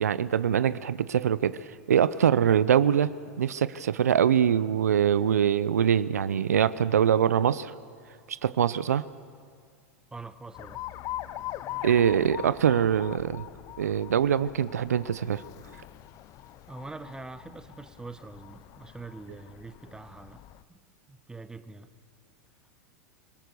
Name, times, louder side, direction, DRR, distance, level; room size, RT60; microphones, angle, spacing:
voice 1, 0.0-3.1 3.4-7.7 8.3-9.0 11.8-13.4 13.8-15.4, right 9 dB, 85° right, 16 dB, 0.6 m, -23 dB
voice 2, 10.1-10.8 16.7-20.4 20.7-20.8 21.1-21.9, right 3 dB, 10° right, 12 dB, 1.1 m, -43 dB
Alarm, 10.5-20.6, left 14 dB, 45° left, 0.7 m, -42 dB
26.5 x 17.0 x 6.9 m, 2.1 s
hypercardioid pair, 105°, 8 cm